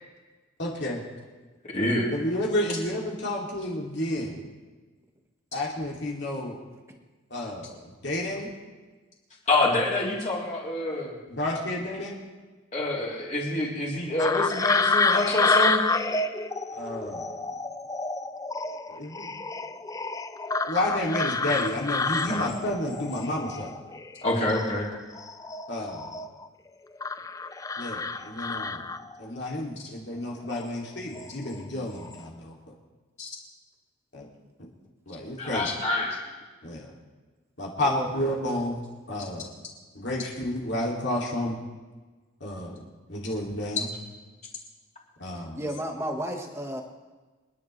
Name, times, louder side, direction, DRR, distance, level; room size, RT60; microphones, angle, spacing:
voice 1, 0.6-1.0 2.1-4.4 5.5-6.6 7.3-7.8 8.0-8.5 11.3-12.2 16.7-17.3 18.9-19.3 20.6-23.8 25.7-26.1 27.8-28.9 29.2-32.5 34.1-34.2 35.1-35.7 36.6-36.9 37.6-38.8 39.1-39.5 39.9-41.5 42.4-42.7 43.1-43.9 45.2-45.6, left 1 dB, 55° left, -3 dB, 2.7 m, -30 dB
voice 2, 1.6-2.1 9.5-11.1 12.7-15.8 22.3-22.5 24.2-24.9 33.2-33.3 35.4-36.2, left 2 dB, 35° left, -5 dB, 3.5 m, -26 dB
sound 1, 14.2-24.2 24.5-26.5 27.0-29.3 30.4-30.7 31.1-31.6 31.9-32.2, left 3 dB, 15° left, 0.4 m, -29 dB
voice 3, 45.6-46.8, equal, 15° right, 2 dB, 1.4 m, -32 dB
28.0 x 10.5 x 3.3 m, 1.3 s
head